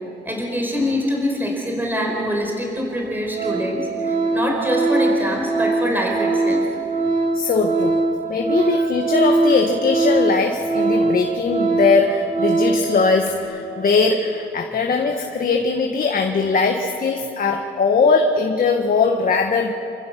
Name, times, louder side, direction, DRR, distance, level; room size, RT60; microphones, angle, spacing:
voice 1, 0.2-6.6 8.8-8.9, equal, 10° right, 0 dB, 4.8 m, -24 dB
Organ, 2.3-2.4 2.9-3.1 3.3-12.9 13.2-13.4, right 3 dB, 40° right, 6.0 m, -21 dB
voice 2, 7.3-8.0 8.3-19.7, left 4 dB, 45° left, 3 dB, 1.5 m, -20 dB
29.5 x 15.0 x 5.9 m, 2.8 s
cardioid pair, 90°, 20 cm